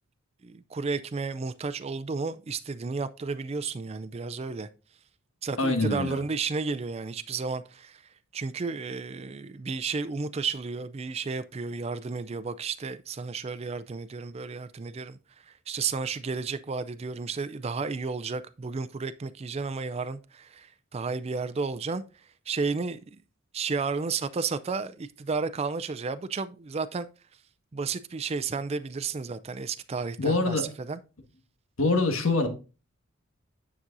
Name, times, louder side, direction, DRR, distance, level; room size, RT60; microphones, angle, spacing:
voice 1, 0.4-4.7 5.4-8.0 8.3-15.2 15.7-22.0 22.5-23.0 23.5-27.1 27.7-31.0, right 4 dB, 30° right, 0.4 m, -32 dB
voice 2, 5.6-6.2 30.2-30.7 31.8-32.5, left 2 dB, 85° left, 1.6 m, -24 dB
9.8 x 6.1 x 2.6 m
head